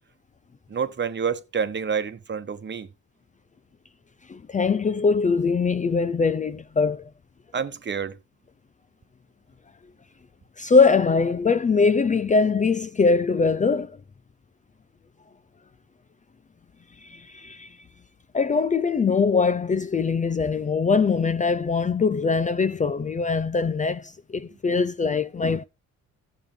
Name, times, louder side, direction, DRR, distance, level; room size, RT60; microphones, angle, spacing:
voice 1, 0.7-2.9 7.5-8.2, right 6 dB, 35° right, 1.1 m, -28 dB
voice 2, 4.3-7.1 10.6-14.0 17.0-17.8 18.3-25.6, left 4 dB, 25° left, 0.5 m, -22 dB
14.0 x 7.2 x 3.3 m
cardioid pair, 90°, 30 cm